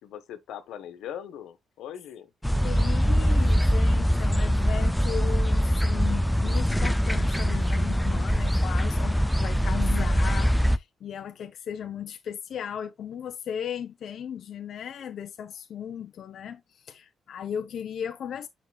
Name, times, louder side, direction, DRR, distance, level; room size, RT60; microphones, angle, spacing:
voice 1, 0.0-2.3, left 9 dB, 90° left, 1.3 m, -40 dB
sound 1, 2.4-10.8, equal, 5° left, 0.3 m, -23 dB
voice 2, 2.6-18.5, left 8 dB, 55° left, 0.6 m, -36 dB
8.8 x 5.4 x 2.3 m
cardioid pair, 150°, 0 cm